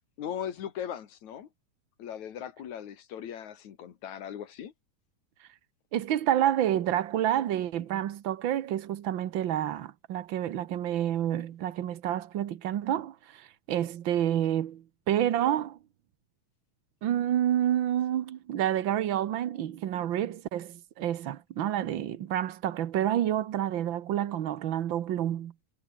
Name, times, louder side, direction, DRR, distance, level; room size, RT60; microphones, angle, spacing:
voice 1, 0.2-1.5 2.0-4.7, left 9 dB, 65° left, 3.2 m, -38 dB
voice 2, 5.9-15.8 17.0-25.5, right 11 dB, 75° right, 1.1 m, -29 dB
omnidirectional pair, 3.7 m